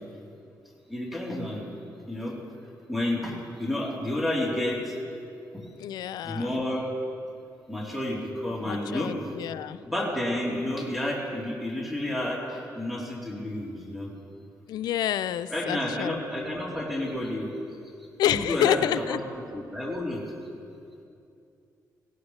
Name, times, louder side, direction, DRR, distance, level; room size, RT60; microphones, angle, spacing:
voice 1, 0.9-1.7 2.1-2.4 2.9-3.3 3.6-5.0 5.5-5.7 6.2-6.9 7.7-9.3 9.9-14.1 15.5-17.5 18.2-19.2 19.5-20.2, left 1 dB, ahead, -4 dB, 3.5 m, -30 dB
voice 2, 5.8-6.5 8.6-9.8 14.7-16.5 18.2-19.2, left 11 dB, 90° left, 12 dB, 0.4 m, -28 dB
19.0 x 16.5 x 3.2 m, 2.5 s
cardioid pair, 70°, 7 cm